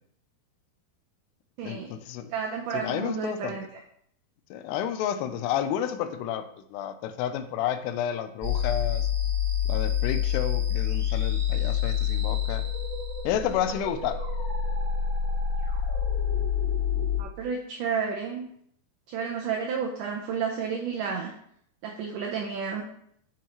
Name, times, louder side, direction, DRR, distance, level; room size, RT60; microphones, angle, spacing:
voice 1, 1.6-2.3 2.7-3.6 4.5-9.1 9.7-12.7 13.2-14.2, left 10 dB, 90° left, 10 dB, 2.7 m, -31 dB
voice 2, 2.3-3.8 17.2-18.4 19.1-21.3 21.8-22.8, right 6 dB, 85° right, 0 dB, 1.8 m, -31 dB
sound 1, 8.4-17.2, left 8 dB, 35° right, 0.7 m, -27 dB
7.3 x 7.1 x 3.1 m, 0.68 s
omnidirectional pair, 4.7 m